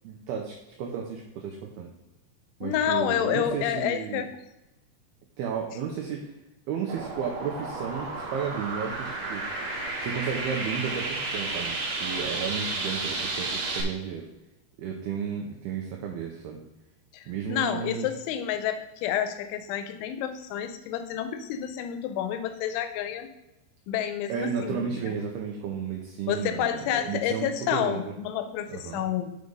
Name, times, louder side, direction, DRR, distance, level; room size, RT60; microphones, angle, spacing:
voice 1, 0.0-1.9 2.6-4.3 5.4-6.3 6.7-9.5 10.0-14.3 14.8-16.6 17.3-18.1 24.3-28.1 28.7-29.0, right 7 dB, 80° right, 1 dB, 2.2 m, -33 dB
voice 2, 2.6-4.3 17.1-23.3 23.9-25.2 26.3-29.4, left 10 dB, 85° left, 9 dB, 3.0 m, -29 dB
sound 1, 6.9-13.8, right 3 dB, 60° right, 2.8 m, -32 dB
8.0 x 5.0 x 5.3 m, 0.96 s
omnidirectional pair, 5.5 m